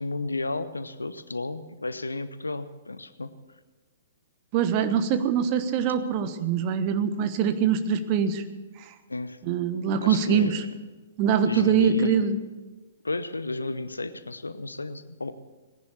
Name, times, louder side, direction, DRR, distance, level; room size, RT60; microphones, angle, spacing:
voice 1, 0.0-3.3 9.1-9.4 10.0-10.6 11.4-12.3 13.0-15.3, left 2 dB, 75° left, 13 dB, 0.8 m, -33 dB
voice 2, 4.5-8.4 8.8-8.9 9.4-10.6 11.2-12.4, right 7 dB, 35° right, 10 dB, 1.2 m, -23 dB
18.5 x 11.0 x 7.1 m, 1.2 s
figure-of-eight pair, 115°, 0 cm